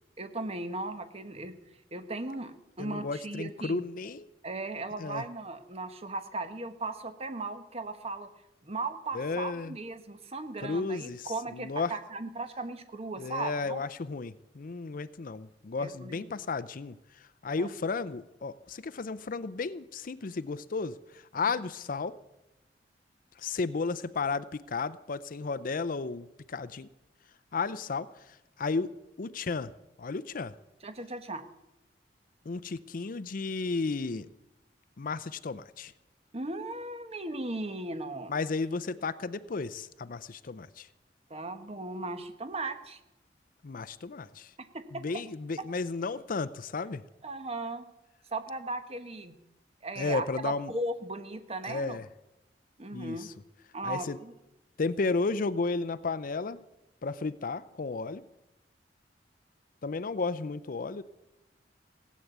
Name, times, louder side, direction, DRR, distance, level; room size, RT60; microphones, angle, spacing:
voice 1, 0.2-1.6 1.9-3.8 4.4-8.3 8.6-13.8 15.8-16.3 17.5-17.7 30.8-31.4 36.3-38.3 41.3-43.0 44.7-45.0 47.2-47.9 48.3-49.3 49.8-52.0 52.8-53.3 53.7-54.3, right 2 dB, 35° right, 9 dB, 1.2 m, -37 dB
voice 2, 2.8-4.3 5.0-5.2 9.1-9.8 10.6-11.9 13.2-17.0 17.4-22.2 23.4-26.9 27.5-28.1 28.6-29.7 30.0-30.5 32.5-34.3 35.0-35.9 38.3-40.9 43.6-44.5 44.9-47.0 50.0-50.7 51.6-52.0 52.9-53.3 53.8-54.2 54.8-56.6 57.0-58.2 59.8-61.0, left 4 dB, 50° left, 15 dB, 0.5 m, -33 dB
17.5 x 8.5 x 8.1 m, 0.93 s
head